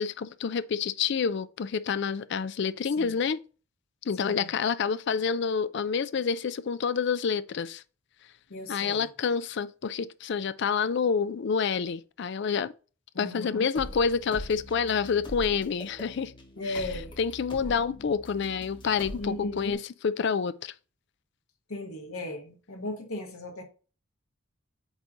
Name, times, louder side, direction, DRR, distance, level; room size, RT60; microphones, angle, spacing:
voice 1, 0.0-3.4 4.0-7.8 8.7-12.7 13.2-16.3 16.7-16.8 17.2-20.7, left 6 dB, 55° left, 0.4 m, -28 dB
voice 2, 4.2-4.5 8.5-9.1 13.1-13.7 16.6-17.1 17.6-18.1 19.2-19.8 21.7-23.6, left 1 dB, 90° left, 1.6 m, -37 dB
sound 1, 13.8-19.7, equal, 20° left, 0.9 m, -43 dB
8.0 x 2.8 x 4.8 m
head